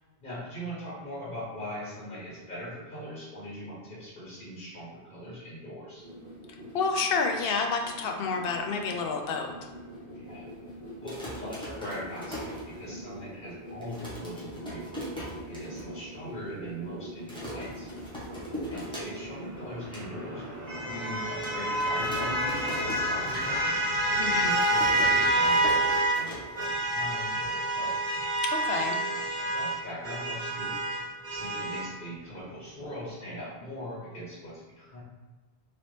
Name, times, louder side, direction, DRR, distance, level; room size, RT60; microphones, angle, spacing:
voice 1, 0.2-6.0 10.1-10.5 11.0-15.0 15.5-17.9 18.7-20.4 20.9-23.6 24.1-28.0 29.0-30.9 31.3-35.0, equal, 55° left, -9 dB, 1.5 m, -41 dB
sound 1, 6.0-21.1, equal, 25° left, 1.2 m, -44 dB
voice 2, 6.7-9.5 24.2-24.5 28.4-29.0, left 4 dB, 70° left, 3 dB, 0.8 m, -29 dB
sound 2, 10.9-13.2 13.5-13.6 13.8-15.9 16.2-16.3 16.5-16.9 17.3-19.4 19.7-20.1 20.6-20.7 21.4-23.9 24.1-27.1, equal, 5° left, 1.0 m, -40 dB
sound 3, 19.6-26.2 26.6-31.9, right 1 dB, 40° right, 1.0 m, -28 dB
4.0 x 2.9 x 3.2 m, 1.3 s
omnidirectional pair, 1.0 m